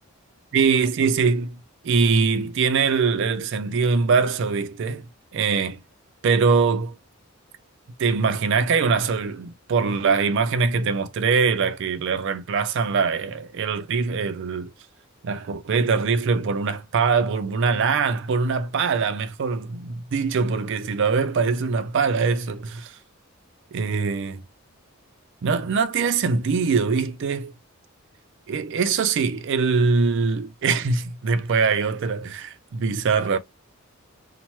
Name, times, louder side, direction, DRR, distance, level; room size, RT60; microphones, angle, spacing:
voice 1, 0.5-1.6 1.8-5.1 5.3-5.8 6.2-7.0 8.0-14.7 15.2-23.0 23.7-24.4 25.4-27.5 28.5-33.4, right 5 dB, 55° right, 0.4 m, -22 dB
2.9 x 2.1 x 2.9 m
head